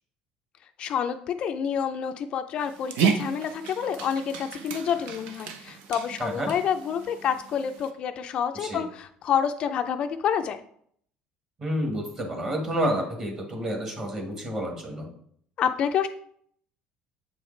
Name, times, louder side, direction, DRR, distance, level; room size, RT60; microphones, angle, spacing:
voice 1, 0.8-10.6 15.6-16.1, left 8 dB, 40° left, 7 dB, 0.3 m, -28 dB
Dog, 2.6-7.9, right 7 dB, 75° right, 0.7 m, -32 dB
voice 2, 6.2-6.5 8.6-8.8 11.6-15.1, equal, 25° right, 3 dB, 1.4 m, -29 dB
7.7 x 4.7 x 3.2 m, 0.63 s
cardioid pair, 165°, 3 cm